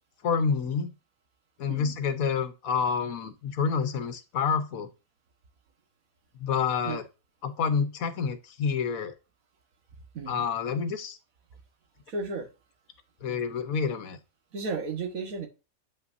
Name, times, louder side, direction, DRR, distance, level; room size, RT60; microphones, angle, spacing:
voice 1, 0.2-0.9 1.6-4.9 6.4-7.0 7.4-9.1 10.3-11.2 13.2-14.2, left 6 dB, 75° left, 1.3 m, -28 dB
voice 2, 1.7-2.0 6.8-7.0 10.1-10.4 12.1-12.5 14.5-15.5, right 4 dB, 70° right, 1.8 m, -34 dB
8.4 x 5.7 x 2.6 m
omnidirectional pair, 1.5 m